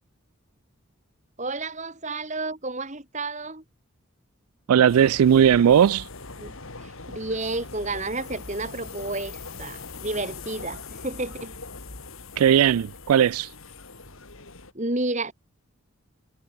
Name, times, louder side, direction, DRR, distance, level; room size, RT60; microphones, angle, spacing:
voice 1, 1.4-3.6 6.4-11.5 14.7-15.3, right 2 dB, 35° right, 2.4 m, -31 dB
voice 2, 4.7-6.1 12.4-13.5, right 9 dB, 90° right, 0.3 m, -18 dB
sound 1, 4.9-14.7, left 3 dB, 70° left, 3.2 m, -41 dB
head